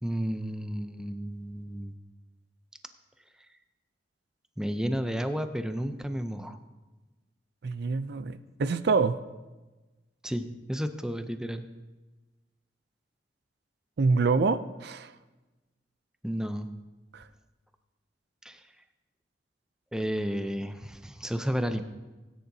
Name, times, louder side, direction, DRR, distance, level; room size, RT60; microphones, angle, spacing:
voice 1, 0.0-1.9 4.6-6.6 10.2-11.7 16.2-16.7 18.4-18.6 19.9-21.8, equal, 5° right, 8 dB, 0.5 m, -32 dB
voice 2, 7.6-9.2 14.0-15.1 17.1-17.2, right 4 dB, 65° right, 13 dB, 0.4 m, -26 dB
17.0 x 9.5 x 2.7 m, 1.2 s
head